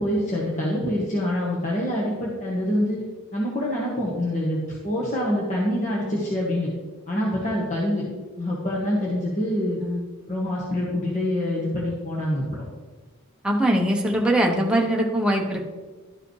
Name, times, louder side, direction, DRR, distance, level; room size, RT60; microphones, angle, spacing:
voice 1, 0.0-3.0 3.3-6.7 7.1-8.1 8.4-9.8 10.3-12.6, left 1 dB, 35° left, -5 dB, 1.3 m, -25 dB
voice 2, 13.4-15.6, right 1 dB, 5° right, 0 dB, 0.8 m, -22 dB
12.0 x 4.8 x 3.2 m, 1.3 s
head